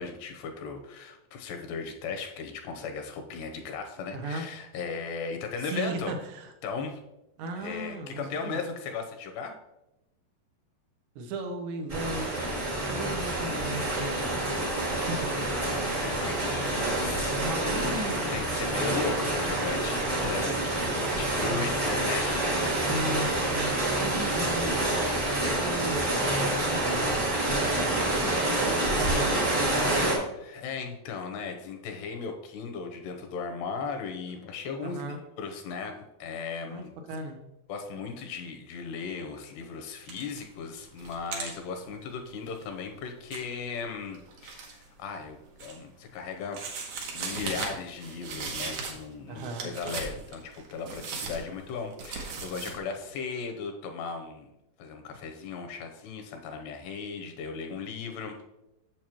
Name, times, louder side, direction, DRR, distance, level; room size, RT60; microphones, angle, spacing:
voice 1, 0.0-6.1 6.6-7.0 7.6-9.6 14.8-15.1 15.6-17.9 18.3-22.3 30.4-36.9 37.7-54.5 54.8-58.4, left 5 dB, 80° left, 4 dB, 2.9 m, -37 dB
voice 2, 4.1-4.4 5.6-6.5 7.4-8.6 11.2-14.8 15.1-15.6 17.3-18.2 22.7-24.9 25.3-30.1 34.8-35.2 36.7-37.4 49.3-49.7, right 2 dB, 85° right, 3 dB, 3.2 m, -37 dB
sound 1, 11.9-30.1, right 1 dB, 40° right, 1.0 m, -27 dB
sound 2, 40.1-40.5 40.8-44.8 45.2-46.0 46.5-49.1 49.4-52.8, right 4 dB, 65° right, 1.8 m, -38 dB
8.9 x 7.1 x 3.0 m, 0.91 s
omnidirectional pair, 4.8 m